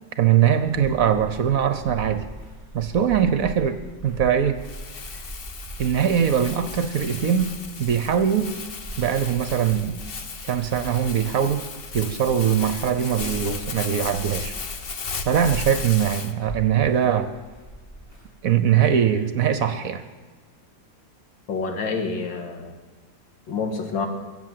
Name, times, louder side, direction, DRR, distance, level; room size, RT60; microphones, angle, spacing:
voice 1, 0.2-2.2 2.7-4.6 5.8-7.5 7.8-8.5 9.0-10.0 10.5-11.6 11.9-14.5 15.2-17.3 18.4-20.0, right 9 dB, 60° right, 11 dB, 1.0 m, -21 dB
sound 1, 0.6-18.4, right 1 dB, 25° left, 5.4 m, -41 dB
Crumpling crinkling, 4.6-16.3, left 4 dB, 45° left, 0.8 m, -35 dB
voice 2, 21.5-22.8 23.5-24.1, left 4 dB, 85° left, 5 dB, 2.5 m, -28 dB
23.5 x 7.8 x 7.6 m, 1.4 s
omnidirectional pair, 2.0 m